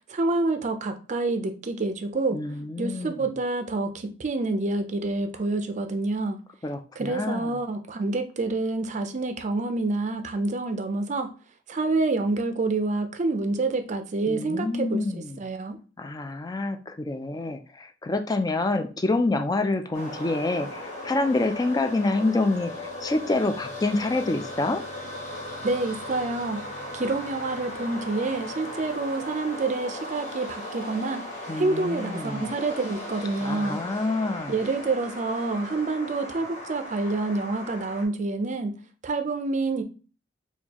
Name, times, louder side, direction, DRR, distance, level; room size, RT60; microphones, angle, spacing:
voice 1, 0.1-2.4 2.8-6.4 7.0-11.3 11.7-15.8 25.6-26.6 26.9-31.3 31.6-33.8 34.5-38.7 39.0-39.8, right 3 dB, 40° right, 0.5 m, -27 dB
voice 2, 2.3-3.3 6.6-7.5 14.3-15.4 16.0-22.7 23.0-24.8 31.5-32.5 33.4-34.5, left 2 dB, 20° left, 0.3 m, -27 dB
sound 1, 19.9-38.1, left 1 dB, 35° left, 1.0 m, -37 dB
4.4 x 2.3 x 2.9 m
head